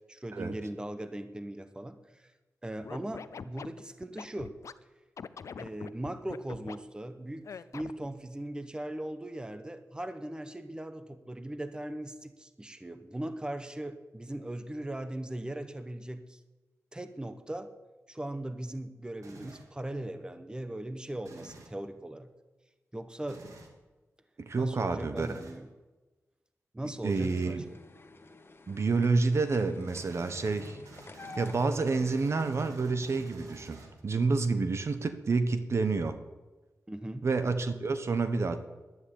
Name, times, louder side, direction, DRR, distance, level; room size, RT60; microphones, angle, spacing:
voice 1, 0.1-2.3 2.6-4.5 5.6-16.4 16.9-17.7 18.1-22.3 22.9-23.4 24.6-25.7 26.7-27.8 36.9-37.3, right 1 dB, 15° right, 10 dB, 1.0 m, -39 dB
Scratching (performance technique), 2.8-4.7 5.2-6.8 7.4-8.1, left 6 dB, 70° left, 0.5 m, -43 dB
sound 1, 19.2-19.8 21.2-21.8 23.3-23.7 25.2-25.7 27.1-27.6 29.9-34.2, right 2 dB, 85° right, 2.0 m, -50 dB
voice 2, 24.4-25.3 27.0-27.6 28.7-30.8 31.4-33.8 34.0-36.2 37.2-38.7, right 4 dB, 60° right, 9 dB, 1.1 m, -28 dB
sound 2, 27.6-32.5, left 3 dB, 45° left, 1.2 m, -50 dB
11.0 x 9.7 x 8.5 m, 1.2 s
cardioid pair, 60°, 5 cm